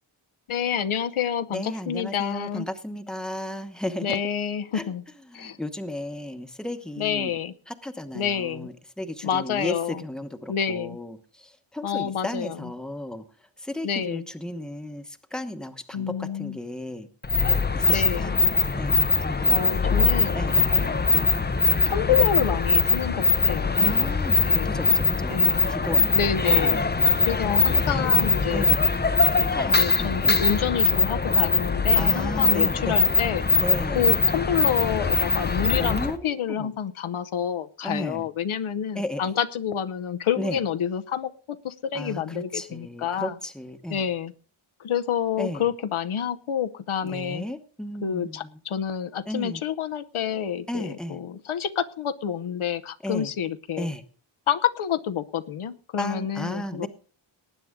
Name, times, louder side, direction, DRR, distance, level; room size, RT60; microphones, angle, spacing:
voice 1, 0.5-2.7 4.0-5.0 5.3-5.6 7.0-7.5 8.1-8.7 9.2-10.0 10.5-11.0 11.8-12.7 13.8-14.2 15.9-16.6 17.9-18.3 19.5-21.4 21.9-24.2 24.4-24.8 25.3-25.7 26.1-26.8 27.3-28.7 29.7-33.4 33.9-43.3 43.9-44.3 44.8-47.4 48.0-53.9 54.5-56.9, left 8 dB, 75° left, 10 dB, 0.9 m, -28 dB
voice 2, 1.5-4.2 4.7-4.9 5.3-7.3 7.7-13.2 13.6-17.1 17.7-18.5 18.8-19.8 20.3-20.9 22.1-22.2 23.8-26.1 26.4-26.8 27.8-28.1 28.5-28.9 29.5-30.4 31.9-33.0 33.6-34.2 35.8-36.7 37.8-38.2 38.9-39.2 40.4-40.6 41.9-44.0 45.4-45.6 47.0-48.5 49.3-49.6 50.7-51.2 53.0-53.3 53.8-54.0 56.0-56.9, left 1 dB, ahead, 7 dB, 0.9 m, -34 dB
sound 1, 17.2-36.2, left 4 dB, 20° left, 0.6 m, -22 dB
19.0 x 9.4 x 3.6 m, 0.39 s
wide cardioid pair, 170°, 49 cm